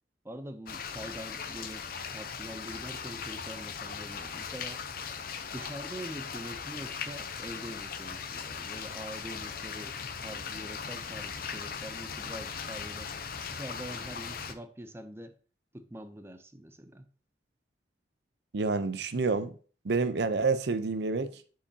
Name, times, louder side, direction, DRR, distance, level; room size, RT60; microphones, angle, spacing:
voice 1, 0.2-1.8 2.1-4.8 5.5-10.0 10.2-13.1 13.5-15.3 15.7-17.1, right 1 dB, 15° right, 0.5 m, -44 dB
sound 1, 0.7-14.5, left 6 dB, 55° left, 0.6 m, -39 dB
voice 2, 18.5-19.5 19.8-21.4, right 4 dB, 70° right, 0.6 m, -28 dB
9.9 x 4.8 x 2.8 m
head